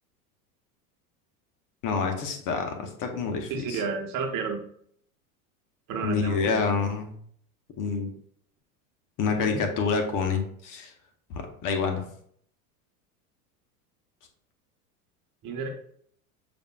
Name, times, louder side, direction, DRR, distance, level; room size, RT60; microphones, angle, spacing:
voice 1, 1.8-3.8 6.0-7.1 7.8-8.1 9.2-10.9 11.3-12.0, left 5 dB, 45° left, 4 dB, 0.9 m, -27 dB
voice 2, 3.5-4.6 5.9-6.6 9.2-9.7 15.4-15.7, right 5 dB, 45° right, 3 dB, 1.0 m, -31 dB
6.6 x 2.5 x 2.2 m, 0.63 s
hypercardioid pair, 95°, 45 cm